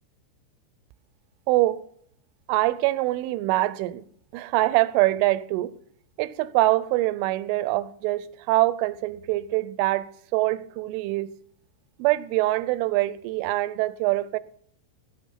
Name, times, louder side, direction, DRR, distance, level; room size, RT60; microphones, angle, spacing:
voice 1, 1.5-1.8 2.5-4.0 4.3-5.8 6.2-10.1 10.3-11.3 12.0-14.4, right 17 dB, 85° right, 3.1 m, -24 dB
17.0 x 8.7 x 5.6 m
omnidirectional pair, 5.6 m